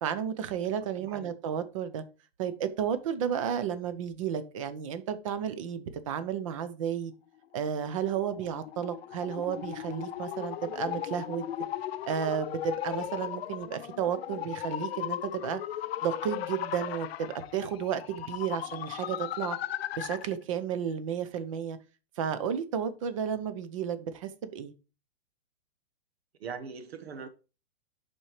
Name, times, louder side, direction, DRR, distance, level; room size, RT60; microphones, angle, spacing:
voice 1, 0.0-2.0 2.4-7.1 7.5-11.5 12.1-15.6 16.0-19.6 20.0-21.8 22.2-24.7, right 8 dB, 35° right, 0.7 m, -32 dB
voice 2, 1.0-1.3 26.4-27.3, right 6 dB, 85° right, 1.2 m, -41 dB
sound 1, 7.6-20.3, left 12 dB, 80° left, 0.5 m, -37 dB
10.5 x 4.4 x 3.2 m
hypercardioid pair, 175°, 30 cm